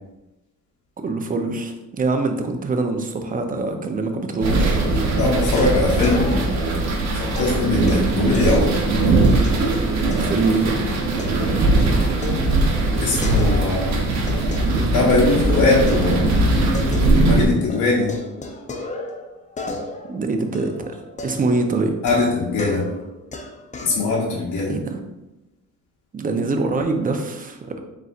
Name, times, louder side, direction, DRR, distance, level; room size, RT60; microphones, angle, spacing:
voice 1, 1.0-4.8 10.1-10.8 20.0-21.9 24.7-25.0 26.1-27.8, right 3 dB, 30° right, 5 dB, 0.6 m, -24 dB
sound 1, 4.4-17.5, right 2 dB, 60° right, 0.9 m, -20 dB
voice 2, 5.2-6.4 7.2-8.7 13.0-14.0 14.9-16.4 17.2-18.1 22.0-22.8 23.8-24.7, left 3 dB, 75° left, -3 dB, 0.8 m, -21 dB
sound 2, 5.5-6.7 7.3-9.6 10.1-10.6 10.9-13.9 14.3-15.4 15.9-17.4 17.7-24.0, left 2 dB, 25° left, 0.6 m, -35 dB
4.1 x 3.9 x 2.4 m, 0.98 s
cardioid pair, 90°, 30 cm